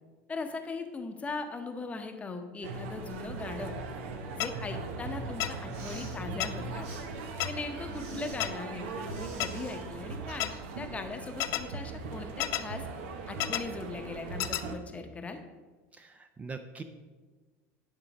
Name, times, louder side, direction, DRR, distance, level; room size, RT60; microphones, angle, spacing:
voice 1, 0.3-3.7 4.3-6.9 7.4-10.5 10.8-12.8 13.3-15.4, left 3 dB, 20° left, 6 dB, 0.8 m, -39 dB
sound 1, 2.6-14.7, right 3 dB, 90° right, 0.9 m, -39 dB
sound 2, 4.4-4.5 5.4-5.5 6.4-6.5 7.4-7.5 8.4-8.5 9.4-9.5 10.4-10.5 11.4-11.6 12.4-12.6 13.4-13.6 14.4-14.6, left 15 dB, 60° left, 0.4 m, -29 dB
Respiratory sounds, 5.6-6.2 6.8-7.0 7.9-8.4 9.1-9.8, right 3 dB, 55° right, 2.2 m, -49 dB
voice 2, 15.9-16.8, right 4 dB, 20° right, 8 dB, 0.5 m, -42 dB
10.0 x 3.7 x 5.3 m, 1.3 s
supercardioid pair, 120°, 7 cm